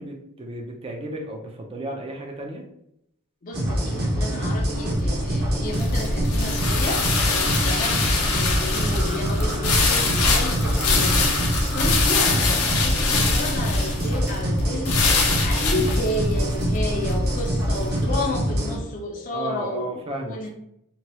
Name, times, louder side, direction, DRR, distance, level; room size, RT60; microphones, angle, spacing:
voice 1, 0.0-2.6 19.3-20.5, right 1 dB, 25° right, 1 dB, 0.4 m, -33 dB
voice 2, 3.4-15.0 15.4-20.5, left 1 dB, 35° left, 0 dB, 0.4 m, -31 dB
sound 1, 3.5-18.8, equal, 45° right, 0.7 m, -25 dB
sound 2, 4.7-18.0, left 3 dB, 85° left, 0.7 m, -24 dB
sound 3, 6.6-12.1, right 1 dB, 85° right, 0.6 m, -34 dB
2.9 x 2.3 x 2.9 m, 0.76 s
head